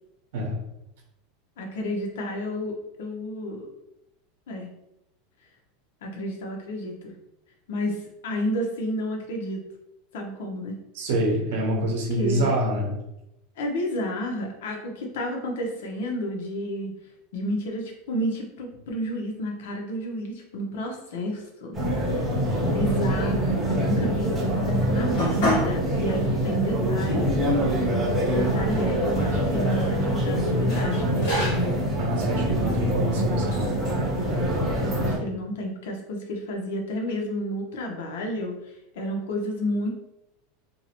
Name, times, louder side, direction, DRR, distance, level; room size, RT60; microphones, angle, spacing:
voice 1, 1.6-3.7 4.5-4.7 6.0-7.1 7.7-9.6 10.1-10.8 11.7-11.8 12.2-12.5 13.6-16.9 17.3-21.8 22.1-22.2 22.6-27.3 28.2-31.0 34.8-38.5 38.9-39.9, equal, 75° left, 1 dB, 0.6 m, -31 dB
voice 2, 10.9-12.9 32.0-33.7, right 1 dB, 65° right, -1 dB, 0.9 m, -26 dB
sound 1, 21.7-35.2, right 1 dB, 5° right, 0.9 m, -25 dB
sound 2, 25.2-25.8 26.2-26.3 27.1-27.2 27.5-28.4 29.3-30.0 30.7-31.8 32.6-32.8 33.5-33.9, left 1 dB, 50° left, 1.2 m, -30 dB
2.6 x 2.0 x 2.9 m, 0.87 s
supercardioid pair, 175°, 0 cm